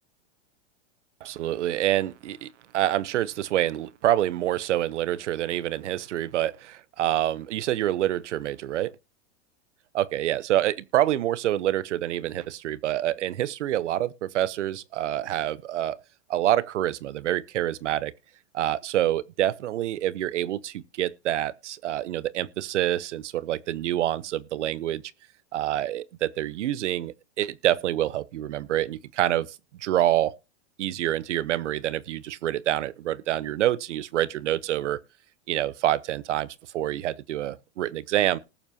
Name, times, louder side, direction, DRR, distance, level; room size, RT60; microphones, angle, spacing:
voice 1, 1.2-8.9 9.9-16.0 16.3-18.1 18.5-25.0 25.5-29.5 29.8-30.4 30.8-35.0 35.5-38.4, right 13 dB, 85° right, 0.9 m, -27 dB
19.5 x 7.2 x 2.7 m
hypercardioid pair, 115°, 35 cm